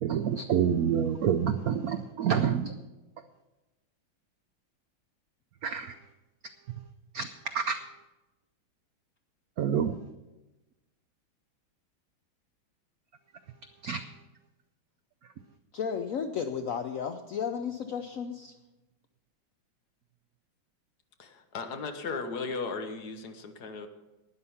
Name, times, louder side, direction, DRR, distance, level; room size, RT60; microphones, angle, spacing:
voice 1, 0.0-2.7 5.6-6.0 7.1-7.8 9.6-10.0 13.8-14.0, right 8 dB, 85° right, 9 dB, 0.8 m, -28 dB
voice 2, 15.7-18.5, left 7 dB, 85° left, 7 dB, 0.7 m, -33 dB
voice 3, 21.2-23.9, left 4 dB, 55° left, 7 dB, 1.5 m, -36 dB
12.5 x 9.8 x 5.6 m, 1.0 s
omnidirectional pair, 2.2 m